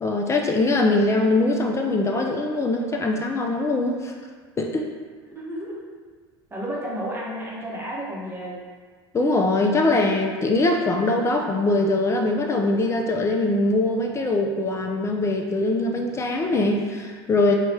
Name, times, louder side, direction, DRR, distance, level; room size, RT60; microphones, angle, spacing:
voice 1, 0.0-4.1 4.6-4.9 9.1-17.5, left 2 dB, 20° left, 2 dB, 0.3 m, -22 dB
voice 2, 5.3-5.8 6.5-8.6, equal, 15° right, -5 dB, 0.8 m, -32 dB
2.8 x 2.2 x 3.1 m, 1.6 s
hypercardioid pair, 70°, 13 cm